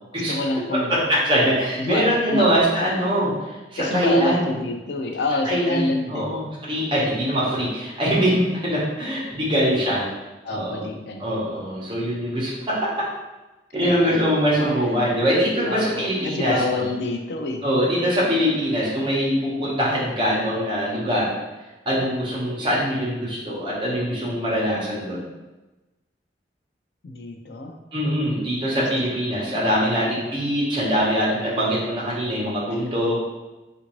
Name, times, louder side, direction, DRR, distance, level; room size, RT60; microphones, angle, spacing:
voice 1, 0.1-0.9 1.8-2.5 3.8-6.3 10.4-11.2 13.8-14.2 15.6-17.6 27.0-27.8 28.8-28.9, left 2 dB, 70° left, 4 dB, 0.4 m, -27 dB
voice 2, 0.9-4.5 5.5-10.1 10.5-10.8 11.2-12.9 13.7-16.9 17.6-21.3 21.9-25.2 27.9-33.2, equal, 25° right, -7 dB, 0.9 m, -23 dB
3.6 x 2.5 x 3.0 m, 1.1 s
head